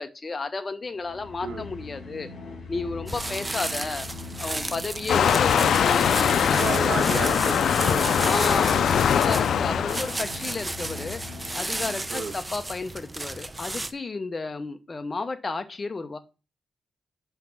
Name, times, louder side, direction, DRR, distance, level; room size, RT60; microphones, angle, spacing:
voice 1, 0.0-2.3 2.7-4.1 4.4-6.9 8.2-11.2 11.5-16.2, left 3 dB, 30° left, 0.7 m, -32 dB
sound 1, 0.9-12.6, left 4 dB, 65° left, 3.0 m, -41 dB
sound 2, 3.1-13.9, right 2 dB, 20° right, 0.6 m, -33 dB
Waves surf, 5.1-10.2, left 8 dB, 90° left, 0.3 m, -22 dB
voice 2, 6.5-8.8 12.1-12.3, right 5 dB, 80° right, 1.1 m, -32 dB
5.6 x 5.1 x 5.8 m
wide cardioid pair, 130°, 0 cm